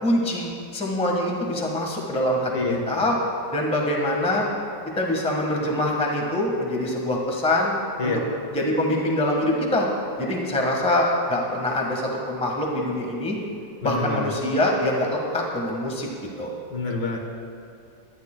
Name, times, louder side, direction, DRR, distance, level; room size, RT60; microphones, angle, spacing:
voice 1, 0.0-3.2 3.5-4.5 5.0-7.7 8.0-8.2 8.5-9.9 10.2-13.4 13.8-16.1 16.4-16.5, left 1 dB, 5° left, -1 dB, 1.1 m, -24 dB
voice 2, 13.8-14.3 16.7-17.2, left 3 dB, 65° left, 1 dB, 1.8 m, -27 dB
19.0 x 12.0 x 2.2 m, 2.5 s
omnidirectional pair, 2.0 m